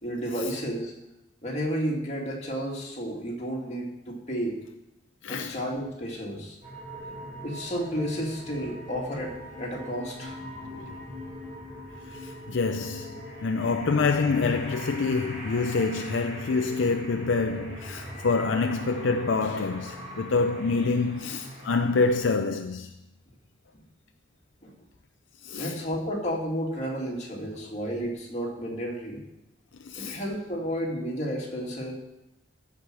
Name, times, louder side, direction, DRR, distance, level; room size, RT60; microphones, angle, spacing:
voice 1, 0.0-0.9 1.4-4.6 5.3-6.6 7.4-10.4 24.6-24.7 25.6-29.2 30.0-31.9, equal, 35° left, 2.2 m, -32 dB
voice 2, 5.2-5.6 10.7-10.9 12.1-22.9 25.4-25.8 29.8-30.2, left 4 dB, 70° left, 0.5 m, -27 dB
sound 1, 6.6-22.2, equal, 25° right, 4.4 m, -41 dB
14.0 x 4.9 x 6.2 m
head